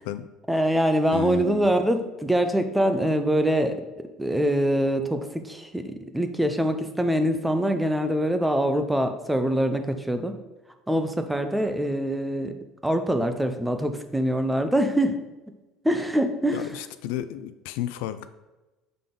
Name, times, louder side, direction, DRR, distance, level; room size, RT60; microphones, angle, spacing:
voice 1, 0.5-3.8 4.2-10.4 10.9-12.5 12.8-15.2 15.8-16.7, equal, 5° right, 8 dB, 0.4 m, -24 dB
voice 2, 1.1-1.7 16.5-18.3, left 12 dB, 85° left, 12 dB, 0.4 m, -32 dB
6.7 x 3.8 x 3.7 m, 1.1 s
cardioid pair, 165°, 0 cm